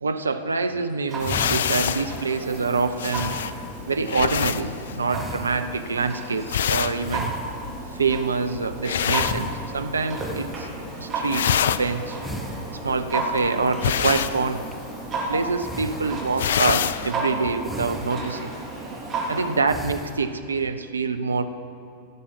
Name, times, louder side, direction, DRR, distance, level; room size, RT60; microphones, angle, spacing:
voice 1, 0.0-3.3 3.8-7.3 7.9-10.7 11.0-12.2 12.7-14.7 15.3-18.5 19.3-21.6, right 4 dB, 75° right, 9 dB, 0.6 m, -26 dB
sound 1, 0.9-1.0 1.2-4.0 5.1-6.0 7.0-8.0 9.1-10.8 11.6-11.9 12.2-13.1 13.4-15.2 15.6-16.5 17.0-17.3 17.6-18.5 18.8-19.3 19.7-20.5, equal, ahead, 1.0 m, -38 dB
Clock, 1.1-19.6, right 2 dB, 25° right, 3.2 m, -33 dB
sound 2, 1.2-10.2 10.4-10.9 11.1-17.1, left 9 dB, 60° left, 0.3 m, -27 dB
16.0 x 6.9 x 5.5 m, 2.6 s
figure-of-eight pair, 90°, 0 cm